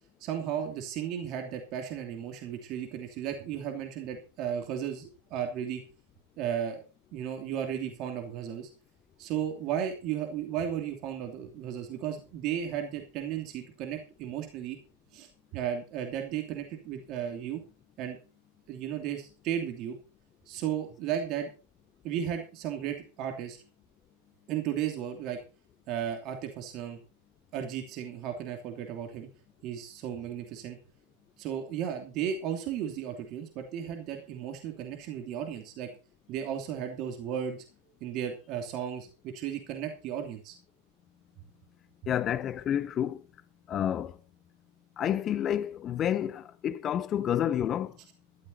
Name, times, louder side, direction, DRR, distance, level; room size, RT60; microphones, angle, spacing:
voice 1, 0.2-5.8 6.4-6.8 7.1-8.7 9.2-14.8 15.1-17.6 18.0-18.2 18.7-20.0 20.5-21.5 22.0-23.6 24.5-25.4 25.9-27.0 27.5-29.3 29.6-30.8 31.4-35.9 36.3-37.6 38.0-40.6, right 9 dB, 40° right, 2.8 m, -34 dB
voice 2, 42.1-43.2 43.7-44.2 45.0-48.0, left 10 dB, 30° left, 0.8 m, -29 dB
13.0 x 12.5 x 4.3 m
figure-of-eight pair, 90°, 0 cm